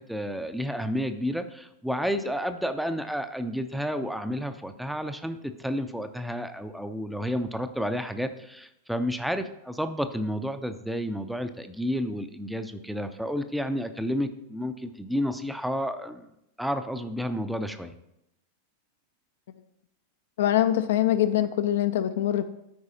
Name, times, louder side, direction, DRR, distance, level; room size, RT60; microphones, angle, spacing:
voice 1, 0.0-16.3 16.6-17.9, equal, ahead, 9 dB, 0.5 m, -31 dB
voice 2, 20.4-22.4, left 11 dB, 60° left, 11 dB, 0.4 m, -23 dB
12.0 x 4.7 x 2.8 m, 0.82 s
figure-of-eight pair, 90°, 0 cm